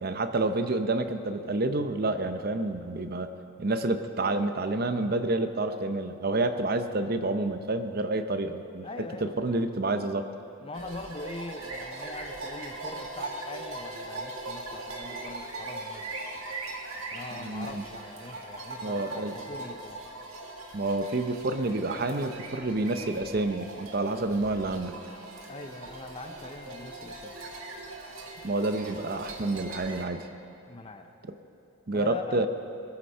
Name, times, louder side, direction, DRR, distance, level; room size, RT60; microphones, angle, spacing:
voice 1, 0.0-3.3 3.6-8.9 9.2-10.3 17.4-17.8 18.8-19.3 20.7-25.0 28.4-30.2 31.9-32.5, right 2 dB, 45° right, 8 dB, 0.6 m, -29 dB
voice 2, 8.8-9.6 10.6-16.2 17.1-20.1 25.5-27.5 30.7-31.1 31.9-32.5, left 2 dB, 25° left, 7 dB, 0.6 m, -42 dB
sound 1, 10.7-30.0, right 2 dB, 75° right, 1.8 m, -40 dB
21.0 x 8.2 x 5.5 m, 3.0 s
head